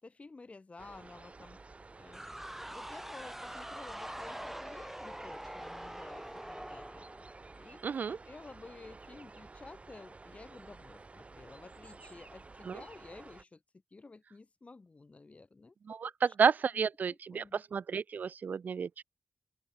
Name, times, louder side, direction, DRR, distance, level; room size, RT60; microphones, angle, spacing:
voice 1, 0.0-1.6 2.0-2.3 2.7-7.1 7.5-13.6 13.9-15.7 16.0-16.3 17.1-17.6, left 3 dB, 45° left, 5.1 m, -52 dB
sound 1, 0.8-13.4, right 3 dB, 45° right, 2.7 m, -52 dB
sound 2, 2.1-7.9, equal, 5° right, 1.1 m, -44 dB
voice 2, 7.8-8.2 12.7-12.8 15.9-19.0, right 6 dB, 70° right, 0.6 m, -31 dB
open air
cardioid pair, 40°, 3 cm